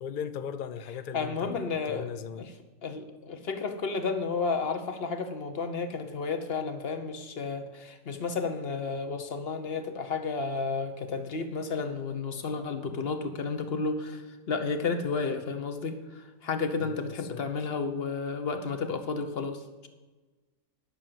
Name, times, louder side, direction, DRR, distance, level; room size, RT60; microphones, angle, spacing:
voice 1, 0.0-2.5 16.8-17.4, left 7 dB, 85° left, 0.4 m, -38 dB
voice 2, 1.1-2.1 2.4-2.5 2.8-14.2 14.5-19.6, left 4 dB, 45° left, 1.2 m, -32 dB
10.5 x 6.4 x 7.5 m
omnidirectional pair, 1.5 m